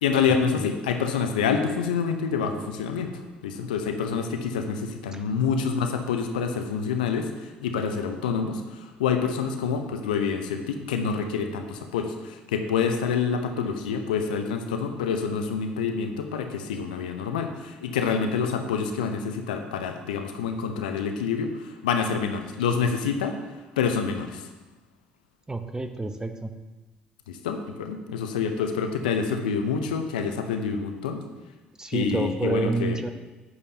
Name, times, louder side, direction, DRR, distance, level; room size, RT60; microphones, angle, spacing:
voice 1, 0.0-23.4 23.8-24.5 27.3-31.2 31.9-33.0, left 6 dB, 80° left, 6 dB, 0.7 m, -27 dB
voice 2, 25.5-26.5 31.8-33.1, right 2 dB, 15° right, 7 dB, 0.9 m, -28 dB
9.5 x 8.5 x 2.8 m, 1.2 s
figure-of-eight pair, 55°, 5 cm